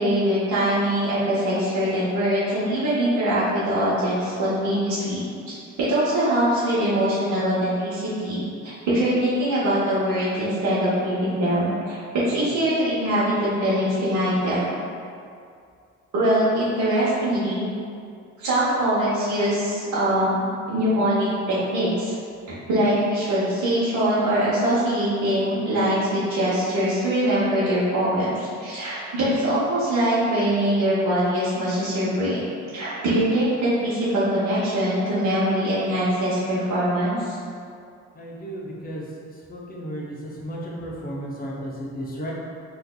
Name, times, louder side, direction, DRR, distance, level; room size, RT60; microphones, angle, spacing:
voice 1, 0.0-5.2 5.8-14.6 16.1-17.7 18.4-22.1 22.7-32.4 32.7-37.4, right 1 dB, 75° right, -10 dB, 1.0 m, -23 dB
voice 2, 38.2-39.0 39.5-40.2 40.4-42.3, equal, 30° left, -4 dB, 0.8 m, -33 dB
4.4 x 2.6 x 2.3 m, 2.3 s
cardioid pair, 90°, 30 cm